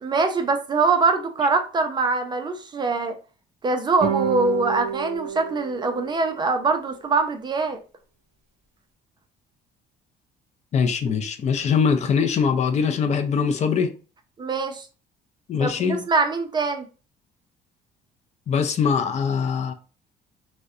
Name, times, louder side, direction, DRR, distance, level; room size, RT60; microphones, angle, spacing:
voice 1, 0.0-3.2 3.6-7.8 14.4-14.9 15.6-16.9, right 3 dB, 25° right, 0.3 m, -23 dB
sound 1, 4.0-6.6, right 7 dB, 45° right, 0.9 m, -29 dB
voice 2, 10.7-13.9 15.5-16.0 18.5-19.7, left 6 dB, 40° left, 0.4 m, -22 dB
2.6 x 2.1 x 2.3 m
cardioid pair, 110°, 17 cm